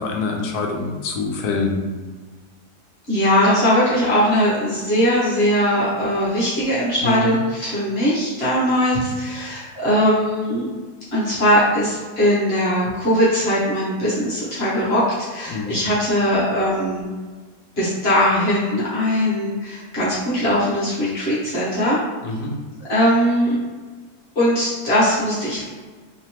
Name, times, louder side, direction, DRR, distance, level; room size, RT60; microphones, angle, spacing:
voice 1, 0.0-1.8 7.0-7.3 15.5-15.8 22.2-22.5, left 3 dB, 75° left, 2 dB, 1.1 m, -25 dB
voice 2, 3.1-10.7 11.1-15.0 15.3-17.1 17.8-22.0 22.9-23.6 24.3-25.6, equal, 45° left, -9 dB, 1.1 m, -20 dB
3.3 x 3.0 x 2.8 m, 1.4 s
omnidirectional pair, 1.8 m